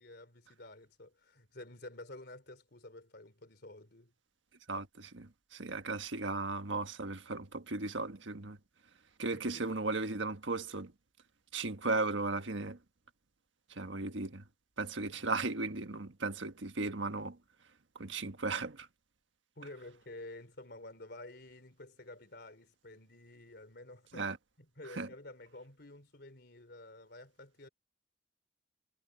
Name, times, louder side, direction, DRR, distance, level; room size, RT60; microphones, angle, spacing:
voice 1, 0.0-4.1 9.3-9.7 15.1-15.2 19.6-24.3 24.6-27.7, left 2 dB, 60° left, 3.8 m, -51 dB
voice 2, 4.7-8.6 9.2-10.9 11.5-12.8 13.7-14.4 14.8-17.4 17.9-18.9 24.1-24.4 24.9-25.1, right 3 dB, 90° right, 1.5 m, -36 dB
head